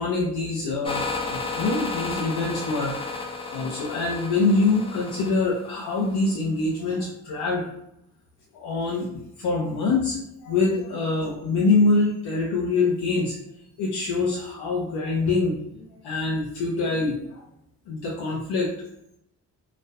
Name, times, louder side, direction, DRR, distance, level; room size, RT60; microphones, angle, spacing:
voice 1, 0.0-2.9 3.5-7.7 8.5-13.4 13.8-17.4 17.9-18.7, left 3 dB, 65° left, -4 dB, 0.7 m, -25 dB
sound 1, 0.8-6.3, left 3 dB, 15° left, 0.4 m, -33 dB
2.4 x 2.3 x 2.2 m, 0.79 s
hypercardioid pair, 40°, 41 cm